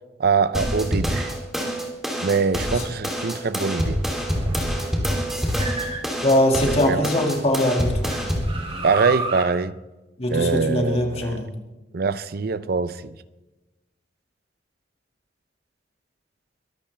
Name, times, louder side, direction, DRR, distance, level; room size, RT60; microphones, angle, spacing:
voice 1, 0.2-1.3 2.2-4.0 4.5-4.6 6.9-7.1 8.8-9.7 10.3-11.4 11.9-13.1, right 4 dB, 60° right, 0.6 m, -23 dB
sound 1, 0.5-8.5, equal, ahead, 3.1 m, -26 dB
sound 2, 3.3-6.7 7.2-9.5, right 3 dB, 35° right, 2.7 m, -34 dB
voice 2, 6.2-8.1 10.2-11.5, left 1 dB, 35° left, 2.2 m, -21 dB
23.0 x 13.0 x 3.4 m
head